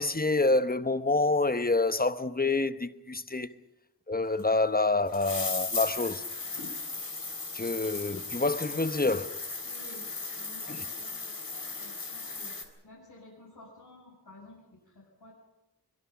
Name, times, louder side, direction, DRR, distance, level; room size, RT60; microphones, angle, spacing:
voice 1, 0.0-3.5 4.1-6.2 7.5-9.4 10.7-10.8, left 3 dB, 20° left, 1.0 m, -27 dB
sound 1, 4.4-4.5 5.1-12.6, left 3 dB, 55° left, 3.6 m, -36 dB
voice 2, 9.6-10.0 10.3-12.5 12.8-15.3, left 2 dB, 70° left, 7.1 m, -53 dB
23.5 x 22.0 x 6.0 m
wide cardioid pair, 55°, 40 cm